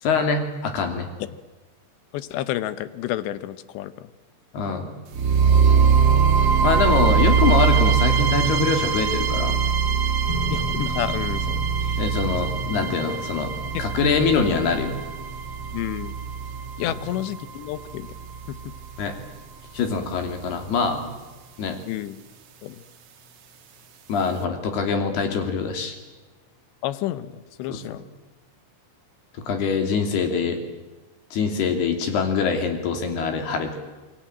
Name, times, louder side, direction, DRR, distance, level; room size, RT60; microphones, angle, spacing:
voice 1, 0.0-1.1 4.5-4.9 6.6-9.6 12.0-13.5 13.8-15.0 19.0-19.1 19.7-21.1 21.6-21.8 24.1-25.9 27.7-27.8 29.5-30.6 31.3-33.8, left 5 dB, 65° left, 6 dB, 4.8 m, -24 dB
voice 2, 2.1-4.1 10.5-12.0 13.7-13.8 15.7-16.1 16.8-18.1 18.5-18.6 21.8-22.2 22.6-22.8 26.8-28.1, left 13 dB, 80° left, 15 dB, 3.2 m, -30 dB
sound 1, 5.1-19.1, right 6 dB, 60° right, 1.7 m, -22 dB
sound 2, 10.3-22.8, left 4 dB, 40° left, 3.7 m, -40 dB
28.0 x 21.5 x 9.0 m, 1.2 s
omnidirectional pair, 5.1 m